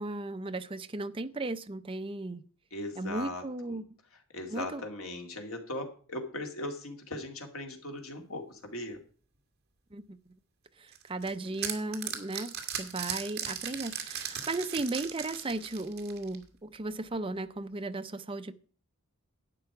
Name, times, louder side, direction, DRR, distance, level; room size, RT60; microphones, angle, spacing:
voice 1, 0.0-2.4 3.0-3.8 4.5-4.8 9.9-10.3 10.8-18.5, right 2 dB, 25° right, 0.6 m, -36 dB
voice 2, 2.7-3.8 4.3-9.0, left 1 dB, 70° left, 2.4 m, -39 dB
sound 1, 10.9-16.4, right 9 dB, 45° right, 2.0 m, -37 dB
11.5 x 8.7 x 4.8 m
head